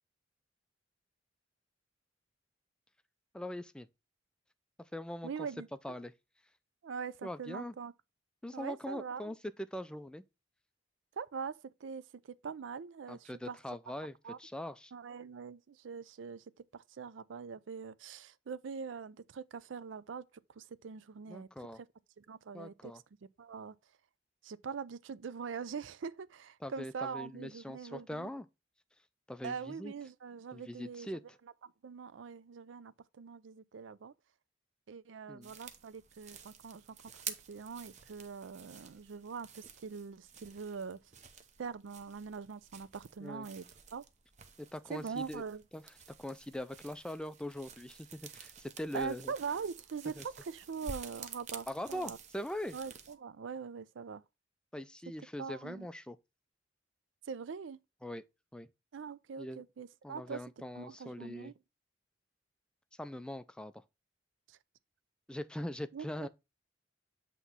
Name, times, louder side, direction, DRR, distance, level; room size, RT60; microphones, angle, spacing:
voice 1, 3.3-3.9 4.8-5.3 5.8-6.1 7.2-7.7 8.4-10.2 13.1-14.9 21.3-21.8 22.5-23.0 26.6-28.5 29.3-29.9 30.5-31.2 35.3-35.5 43.2-43.5 44.6-45.4 45.7-45.8 46.2-49.3 50.2-50.3 51.7-52.8 54.7-56.2 58.0-58.2 58.5-58.7 59.4-59.6 60.0-61.5 63.0-63.8 65.3-66.3, left 1 dB, 5° left, 0.3 m, -42 dB
voice 2, 5.2-5.7 6.8-7.9 8.5-9.3 11.2-12.0 12.4-13.6 14.2-14.4 14.9-16.4 16.7-21.5 22.2-22.9 23.4-23.8 24.4-28.3 29.4-31.1 31.6-34.1 34.9-37.0 37.5-41.0 41.6-43.7 43.9-44.0 44.9-45.6 48.9-52.2 52.7-54.2 55.4-55.9 57.3-57.8 58.9-61.5 64.5-64.6 65.9-66.1, right 6 dB, 85° right, 0.4 m, -43 dB
sound 1, 35.4-53.2, right 6 dB, 40° right, 0.8 m, -51 dB
8.1 x 3.0 x 5.4 m
head